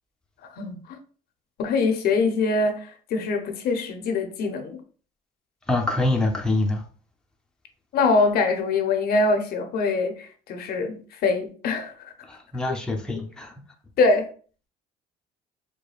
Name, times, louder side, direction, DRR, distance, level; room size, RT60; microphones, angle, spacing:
voice 1, 0.5-1.0 1.6-4.8 7.9-12.1 14.0-14.3, left 3 dB, 65° left, 0.7 m, -24 dB
voice 2, 5.7-6.8 12.2-13.5, left 2 dB, 5° left, 0.6 m, -25 dB
4.8 x 2.2 x 2.4 m
cardioid pair, 110°, 17 cm